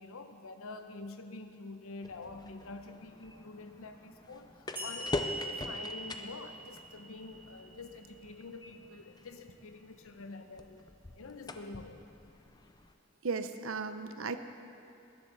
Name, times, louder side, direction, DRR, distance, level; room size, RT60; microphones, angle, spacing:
voice 1, 0.0-10.9 11.1-12.0, left 3 dB, 80° left, 7 dB, 0.9 m, -47 dB
sound 1, 2.0-12.9, left 2 dB, 20° left, 0.5 m, -44 dB
sound 2, 4.8-8.1, equal, 10° right, 2.3 m, -42 dB
voice 2, 13.2-14.4, right 4 dB, 75° right, 9 dB, 0.7 m, -35 dB
21.0 x 11.0 x 4.1 m, 2.7 s
head